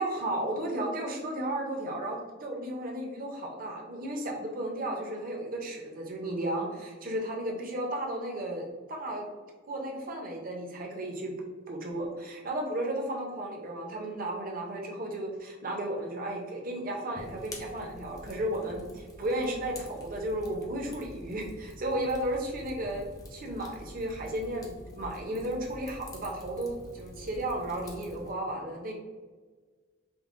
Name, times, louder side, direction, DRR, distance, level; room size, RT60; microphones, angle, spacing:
voice 1, 0.0-9.3 9.7-11.3 11.7-28.9, right 1 dB, 45° right, 0 dB, 0.6 m, -34 dB
Fire, 17.2-28.3, left 1 dB, 15° left, 0.4 m, -47 dB
5.3 x 2.1 x 2.5 m, 1.4 s
head